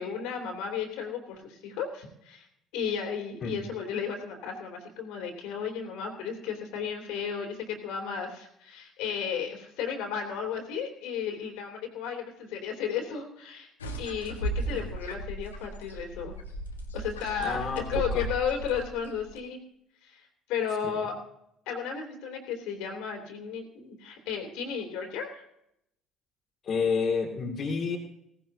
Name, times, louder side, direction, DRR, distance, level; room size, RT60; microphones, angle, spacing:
voice 1, 0.0-2.5 2.7-13.7 14.0-16.3 16.9-19.6 20.0-21.1 21.7-25.4, left 7 dB, 65° left, 3 dB, 3.0 m, -34 dB
sound 1, 13.8-19.4, right 1 dB, 85° left, 1.4 m, -36 dB
voice 2, 17.4-18.3 20.8-21.1 26.6-28.0, left 5 dB, 50° left, 0 dB, 2.2 m, -30 dB
18.0 x 16.0 x 2.7 m, 0.76 s
figure-of-eight pair, 55°, 0 cm